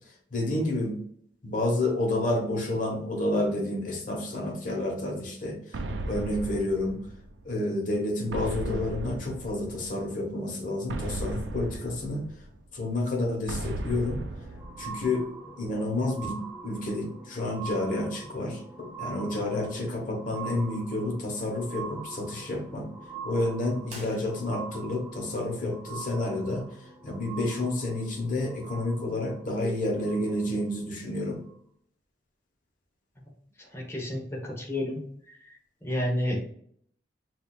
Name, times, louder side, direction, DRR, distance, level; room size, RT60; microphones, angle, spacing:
voice 1, 0.3-1.0 1.4-7.0 7.4-12.2 12.7-14.2 14.8-15.3 15.6-22.9 23.2-31.4, left 2 dB, 45° left, 0 dB, 1.2 m, -30 dB
sound 1, 5.7-7.5 8.3-10.0 10.9-12.7 13.5-15.3, right 2 dB, 80° right, 0.5 m, -36 dB
sound 2, 13.9-30.7 31.5-31.6, right 5 dB, 10° right, 0.5 m, -44 dB
sound 3, 23.8-24.9, right 1 dB, 40° right, 1.7 m, -47 dB
voice 2, 33.7-35.0 35.3-35.4 35.8-36.4, left 1 dB, 15° left, -2 dB, 1.1 m, -30 dB
6.2 x 2.7 x 2.4 m, 0.65 s
head